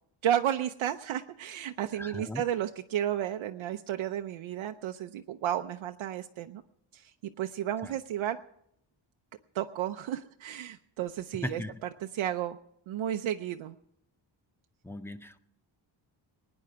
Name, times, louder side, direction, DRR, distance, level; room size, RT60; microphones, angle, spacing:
voice 1, 0.2-6.6 6.9-7.0 7.4-8.4 9.5-11.6 12.1-12.6 12.9-13.8, right 11 dB, 90° right, 5 dB, 0.7 m, -32 dB
voice 2, 1.9-2.4 7.8-7.9 11.3-11.7 14.8-15.4, equal, 5° left, 11 dB, 0.5 m, -38 dB
22.0 x 9.7 x 4.6 m, 0.75 s
wide cardioid pair, 170°, 47 cm